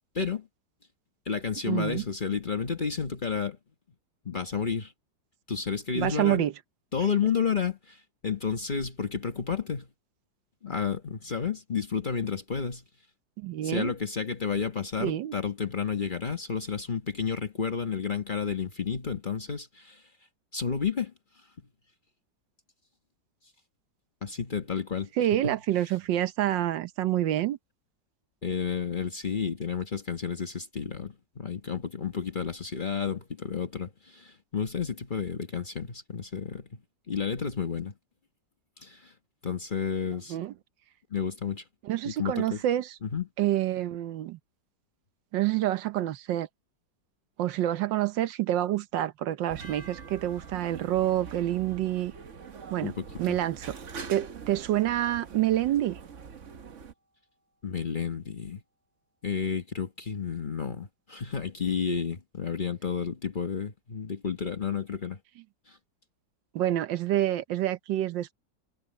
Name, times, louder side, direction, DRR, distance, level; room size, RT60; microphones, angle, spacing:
voice 1, 0.1-0.5 1.3-3.6 4.2-4.9 5.5-6.5 6.9-8.0 8.2-9.9 10.6-12.8 13.6-20.0 20.5-21.1 24.2-25.1 25.4-25.5 28.4-36.8 37.1-37.9 38.8-39.1 39.4-40.4 41.1-41.6 42.0-42.6 43.0-43.3 52.8-53.4 57.6-58.6 59.2-65.2 65.7-65.8, left 6 dB, 30° left, 1.2 m, -31 dB
voice 2, 1.7-2.0 5.9-6.5 13.4-13.9 15.0-15.3 25.2-27.6 40.3-40.5 41.8-43.0 43.4-44.4 45.3-46.5 47.4-52.1 52.7-52.9 53.2-53.8 54.1-56.0 66.5-68.3, right 13 dB, 85° right, 1.5 m, -27 dB
sound 1, 49.5-56.9, right 6 dB, 45° right, 1.3 m, -44 dB
sound 2, 49.6-55.9, right 3 dB, 20° right, 6.4 m, -56 dB
omnidirectional pair, 1.9 m